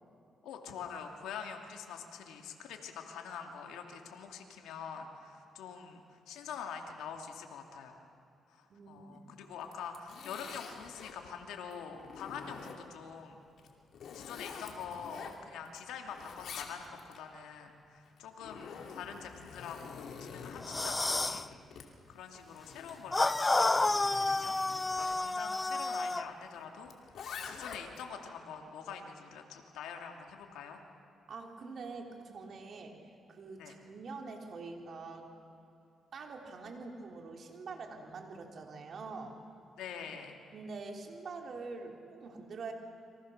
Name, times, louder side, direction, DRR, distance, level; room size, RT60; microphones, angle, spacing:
voice 1, 0.4-8.0 8.5-13.4 14.1-21.5 22.1-24.6 24.9-27.2 27.5-30.8 33.6-33.7 39.8-40.4, left 7 dB, 90° left, 3 dB, 2.8 m, -45 dB
voice 2, 8.7-9.2 31.3-35.3 36.1-39.4 40.5-42.7, right 4 dB, 60° right, 2 dB, 3.9 m, -45 dB
Zipper (clothing), 9.6-11.2 11.7-13.1 13.6-15.8 16.1-17.2 18.1-25.2 26.9-28.1, left 6 dB, 70° left, 2.9 m, -47 dB
sound 1, 20.6-21.5 23.1-26.3, left 2 dB, 20° left, 0.7 m, -30 dB
30.0 x 24.0 x 6.7 m, 2.7 s
cardioid pair, 75°, 0 cm